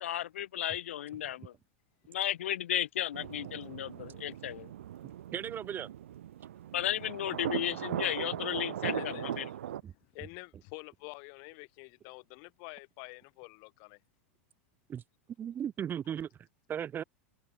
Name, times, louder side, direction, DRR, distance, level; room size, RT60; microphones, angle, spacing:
voice 1, 0.0-1.5 2.1-4.7 6.7-9.5, left 12 dB, 75° left, 0.4 m, -34 dB
sound 1, 3.1-9.8, right 11 dB, 75° right, 0.4 m, -39 dB
voice 2, 5.3-5.9 9.8-9.9 14.9-15.0 15.4-16.3 16.7-17.0, right 9 dB, 30° right, 1.6 m, -36 dB
voice 3, 8.8-9.3 10.2-14.0, left 40 dB or more, 55° left, 7.3 m, -47 dB
hypercardioid pair, 100°, 7 cm